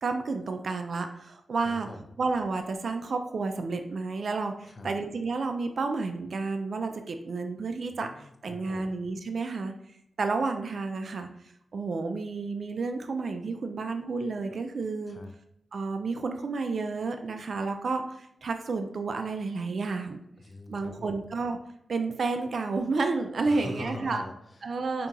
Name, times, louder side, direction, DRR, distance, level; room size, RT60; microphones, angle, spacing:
voice 1, 0.0-1.9 2.2-8.1 8.4-9.7 10.2-11.3 11.7-15.2 15.7-20.2 20.7-21.6 21.9-24.2 24.6-25.1, right 3 dB, 60° right, 6 dB, 0.4 m, -31 dB
voice 2, 1.6-2.2 4.6-5.0 7.8-8.9 15.1-15.3 20.4-21.3 23.4-24.7 25.0-25.1, left 2 dB, 40° left, 4 dB, 0.5 m, -43 dB
5.3 x 2.8 x 2.4 m, 0.75 s
wide cardioid pair, 145°, 0 cm